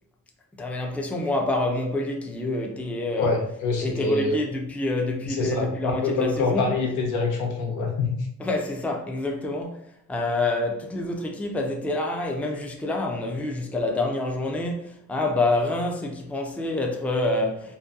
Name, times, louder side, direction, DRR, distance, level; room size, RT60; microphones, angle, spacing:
voice 1, 0.6-3.3 3.8-6.7 8.4-17.8, left 2 dB, 5° left, 0.4 m, -27 dB
voice 2, 3.2-4.4 5.2-8.3, left 3 dB, 80° left, 0.7 m, -25 dB
2.7 x 2.2 x 2.4 m
cardioid pair, 90°, 30 cm